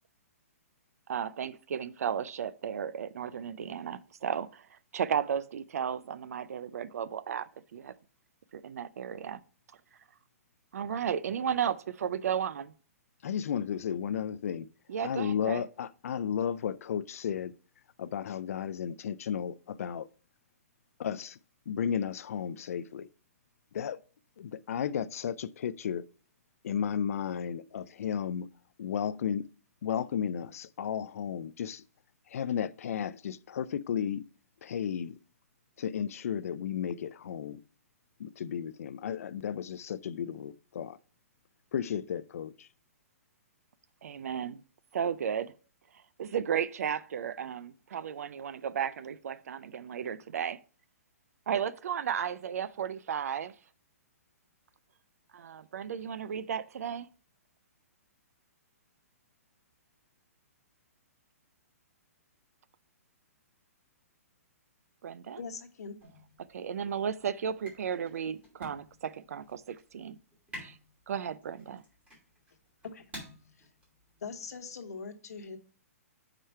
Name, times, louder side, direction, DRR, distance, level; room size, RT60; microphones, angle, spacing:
voice 1, 1.1-7.9 8.5-9.4 10.7-12.7 14.9-15.6 44.0-44.6 44.9-45.5 46.2-50.6 51.5-53.5 55.3-57.1 65.0-65.4 66.5-70.2 70.6-70.8 71.1-71.8, right 8 dB, 70° right, 0.4 m, -34 dB
voice 2, 13.2-14.7 15.0-17.5 18.0-20.1 21.0-21.4 21.7-23.1 23.7-24.0 24.4-26.1 26.6-28.5 28.8-29.5 29.8-31.8 32.3-34.2 34.6-35.2 35.8-37.6 38.2-41.0 41.7-42.7, left 8 dB, 65° left, 0.4 m, -33 dB
voice 3, 65.4-66.0 72.8-73.0 73.6-73.7 74.2-75.6, left 5 dB, 80° left, 1.1 m, -41 dB
sound 1, 66.0-74.8, equal, 15° right, 2.7 m, -51 dB
4.9 x 4.4 x 5.6 m
hypercardioid pair, 160°, 8 cm